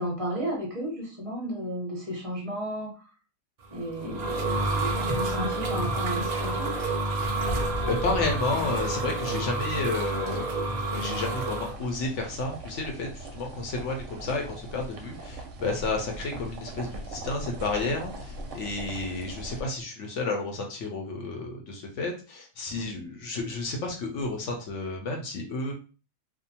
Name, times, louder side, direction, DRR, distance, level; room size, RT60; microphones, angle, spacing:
voice 1, 0.0-2.9 3.7-6.7, right 1 dB, 35° right, -3 dB, 0.6 m, -33 dB
sound 1, 3.7-11.7, right 2 dB, 85° right, 0.3 m, -29 dB
voice 2, 7.5-10.6 10.9-25.7, left 3 dB, 65° left, 2 dB, 0.9 m, -31 dB
sound 2, 11.6-19.6, right 2 dB, 70° right, 0.8 m, -40 dB
2.6 x 2.1 x 2.7 m, 0.35 s
omnidirectional pair, 1.5 m